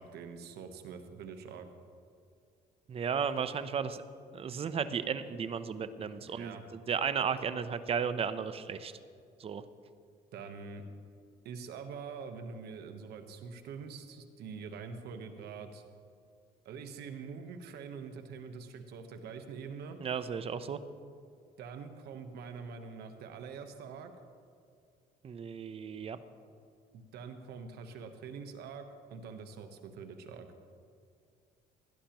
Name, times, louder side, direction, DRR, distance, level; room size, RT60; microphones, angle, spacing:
voice 1, 0.0-1.7 6.3-6.6 10.3-10.9 11.4-15.8 16.6-20.0 21.6-24.1 26.9-30.5, right 5 dB, 75° right, 7 dB, 1.1 m, -45 dB
voice 2, 2.9-4.0 4.3-8.9 9.4-9.6 20.0-20.8 25.2-26.2, right 6 dB, 35° right, 12 dB, 0.6 m, -34 dB
17.0 x 11.5 x 3.0 m, 2.3 s
cardioid pair, 110°, 17 cm